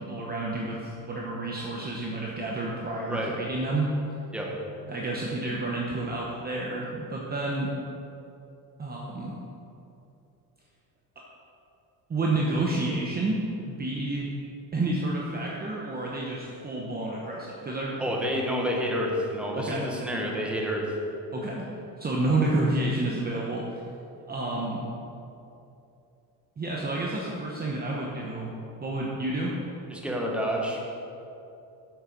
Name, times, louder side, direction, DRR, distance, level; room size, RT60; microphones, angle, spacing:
voice 1, 0.0-3.9 4.9-7.7 8.8-9.4 12.1-14.3 14.7-18.0 19.5-19.9 21.3-21.6 22.0-23.6 24.3-24.9 26.6-28.5 28.8-29.5, right 2 dB, 20° right, -3 dB, 0.9 m, -30 dB
voice 2, 18.0-21.0 29.9-30.8, equal, 5° right, -2 dB, 1.3 m, -29 dB
7.8 x 6.5 x 5.2 m, 2.7 s
cardioid pair, 125°, 42 cm